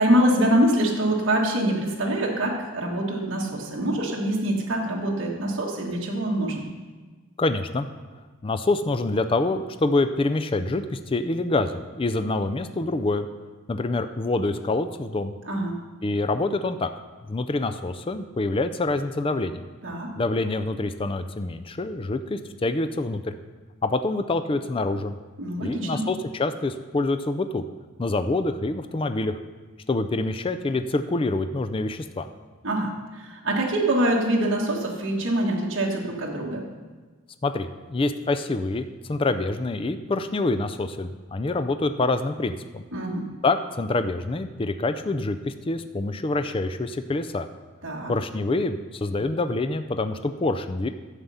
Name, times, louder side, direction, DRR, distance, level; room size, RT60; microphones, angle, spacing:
voice 1, 0.0-6.7 15.4-15.8 19.8-20.1 25.4-26.0 32.6-36.7 42.9-43.3 47.8-48.1, right 1 dB, 60° right, -3 dB, 1.5 m, -24 dB
voice 2, 7.4-7.9 8.4-13.3 13.7-15.3 16.0-16.9 17.3-19.6 20.2-23.3 23.8-25.2 25.6-27.6 28.0-29.4 29.9-32.3 37.4-42.8 43.4-47.5 48.1-50.9, left 2 dB, 25° left, 9 dB, 0.4 m, -26 dB
11.5 x 7.5 x 5.6 m, 1.4 s
head